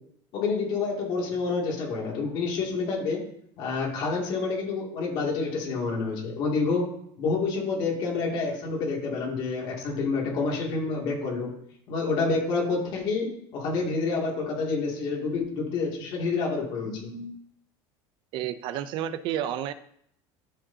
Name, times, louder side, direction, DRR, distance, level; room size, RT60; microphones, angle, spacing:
voice 1, 0.3-3.2 3.6-6.9 7.2-11.5 11.9-17.3, left 4 dB, 45° left, -2 dB, 2.5 m, -28 dB
voice 2, 18.3-19.7, right 11 dB, 45° right, 12 dB, 0.5 m, -30 dB
12.5 x 5.0 x 2.8 m, 0.69 s
cardioid pair, 165°, 11 cm